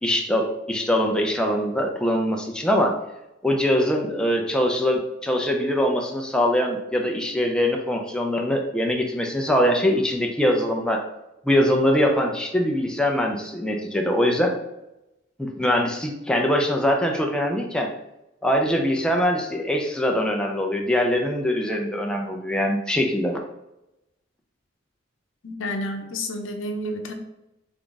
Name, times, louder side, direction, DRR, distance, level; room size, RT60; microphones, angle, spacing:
voice 1, 0.0-3.0 3.4-11.0 11.4-14.5 15.4-17.9 18.4-23.4, equal, 5° left, 1 dB, 0.5 m, -23 dB
voice 2, 25.4-27.1, left 1 dB, 85° left, 4 dB, 0.7 m, -30 dB
3.6 x 3.4 x 3.9 m, 0.90 s
head